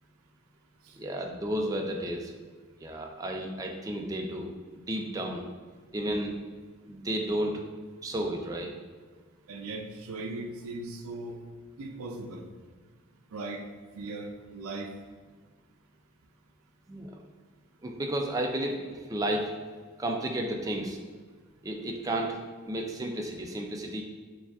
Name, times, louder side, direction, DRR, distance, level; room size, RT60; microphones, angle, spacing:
voice 1, 1.0-2.3 2.8-4.5 4.9-5.4 5.9-6.4 6.9-7.6 8.0-8.7 16.9-17.2 17.8-19.5 20.0-21.0 21.6-22.4 22.6-24.0, right 1 dB, 15° right, 2 dB, 0.3 m, -32 dB
voice 2, 9.5-11.4 11.8-12.4 13.3-13.6 13.9-14.9, right 2 dB, 85° right, 4 dB, 0.4 m, -38 dB
6.8 x 2.3 x 2.3 m, 1.5 s
head